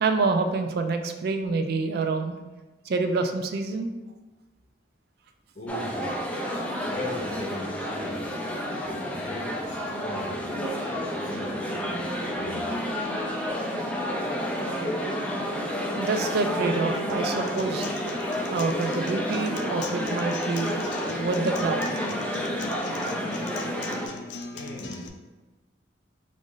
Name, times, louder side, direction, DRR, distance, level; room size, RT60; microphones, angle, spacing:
voice 1, 0.0-2.4 2.9-3.9 16.0-17.9 18.5-20.8 21.2-21.9, right 3 dB, 55° right, 6 dB, 0.4 m, -27 dB
voice 2, 5.5-6.2 6.8-8.2 8.8-10.4 10.9-12.8 24.5-25.1, left 1 dB, 45° left, -2 dB, 0.8 m, -39 dB
sound 1, 5.7-24.1, equal, 5° left, 0.4 m, -30 dB
Acoustic guitar, 17.1-25.1, left 4 dB, 70° left, 0.4 m, -41 dB
4.0 x 2.5 x 3.8 m, 1.1 s
head